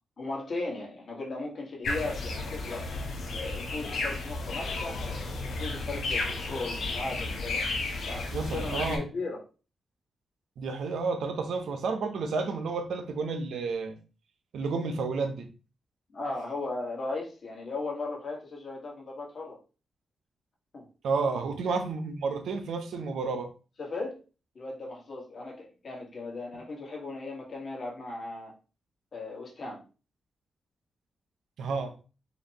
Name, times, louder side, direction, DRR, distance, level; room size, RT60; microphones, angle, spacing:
voice 1, 0.2-2.9 3.4-7.6 8.1-9.4 16.1-19.6 20.7-20.9 23.8-24.2 24.5-28.5 29.1-29.8, left 3 dB, 55° left, 1.6 m, -37 dB
sound 1, 1.8-9.0, left 3 dB, 75° left, 1.0 m, -33 dB
voice 2, 8.3-9.1 10.6-14.0 14.5-15.5 21.0-23.5 31.6-31.9, right 4 dB, 85° right, 0.7 m, -31 dB
5.0 x 2.5 x 2.9 m
cardioid pair, 80°, 0 cm